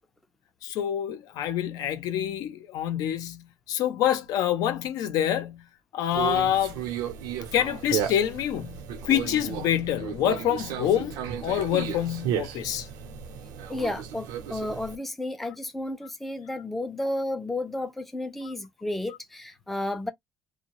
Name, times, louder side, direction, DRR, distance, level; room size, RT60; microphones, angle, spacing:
voice 1, 0.6-5.7 5.9-6.8 7.5-12.9, left 10 dB, 70° left, 0.6 m, -27 dB
Conversation, 6.1-15.0, right 9 dB, 90° right, 0.8 m, -34 dB
voice 2, 13.7-20.1, left 1 dB, 5° left, 0.4 m, -32 dB
2.6 x 2.2 x 2.9 m
cardioid pair, 145°, 7 cm